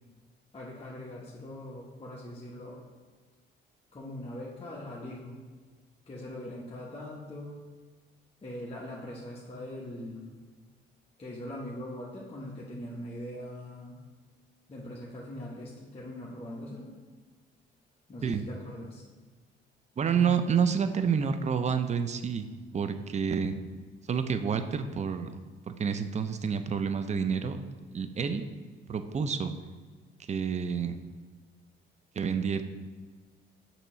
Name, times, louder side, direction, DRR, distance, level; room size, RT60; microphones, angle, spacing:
voice 1, 0.5-2.7 3.9-5.4 6.1-7.6 8.4-10.4 11.2-14.0 14.7-16.9 18.1-19.0 20.1-20.4, left 1 dB, 30° left, -5 dB, 1.1 m, -41 dB
voice 2, 20.0-22.5 22.7-23.5 24.1-25.3 25.7-27.6 27.9-28.4 28.9-29.5 30.3-31.0 32.2-32.6, right 6 dB, 35° right, 10 dB, 0.5 m, -28 dB
6.8 x 3.0 x 5.6 m, 1.5 s
cardioid pair, 90°, 20 cm